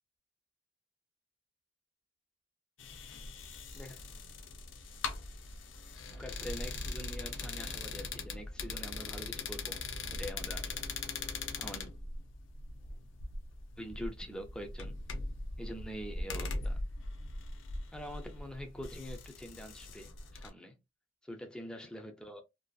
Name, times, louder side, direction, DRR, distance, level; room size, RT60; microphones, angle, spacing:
sound 1, 2.8-20.5, left 3 dB, 80° left, 0.5 m, -41 dB
voice 1, 6.1-9.8 10.1-10.9 11.2-11.9 13.8-15.0 15.6-16.8 17.9-20.8 21.2-22.4, equal, 5° left, 0.4 m, -45 dB
2.6 x 2.3 x 2.2 m
head